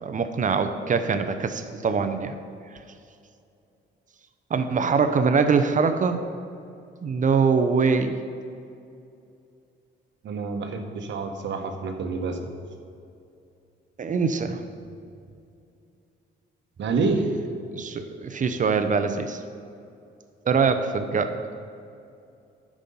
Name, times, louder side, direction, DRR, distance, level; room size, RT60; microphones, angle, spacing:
voice 1, 0.0-2.4 2.7-2.8 4.5-6.2 7.0-8.2 14.0-14.6 17.7-19.4 20.5-21.3, right 5 dB, 40° right, 9 dB, 0.8 m, -23 dB
voice 2, 10.2-12.4 16.8-17.3, right 4 dB, 65° right, 5 dB, 1.1 m, -27 dB
10.5 x 6.2 x 5.5 m, 2.6 s
cardioid pair, 90°, 20 cm